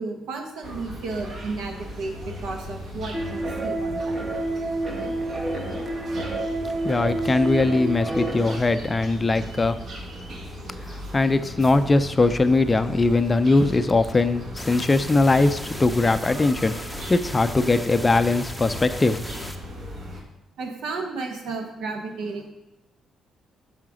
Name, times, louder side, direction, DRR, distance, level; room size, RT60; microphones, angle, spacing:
voice 1, 0.0-4.2 20.6-22.5, right 3 dB, 80° right, 3 dB, 1.2 m, -33 dB
sound 1, 0.6-20.2, left 1 dB, 60° right, 1.6 m, -37 dB
sound 2, 3.1-8.6, right 2 dB, 35° right, 1.1 m, -29 dB
voice 2, 6.8-9.8 10.9-19.2, left 3 dB, 25° left, 10 dB, 0.4 m, -21 dB
sound 3, 14.6-19.6, equal, 5° right, 0.7 m, -37 dB
5.7 x 4.8 x 6.2 m, 0.98 s
cardioid pair, 90°, 0 cm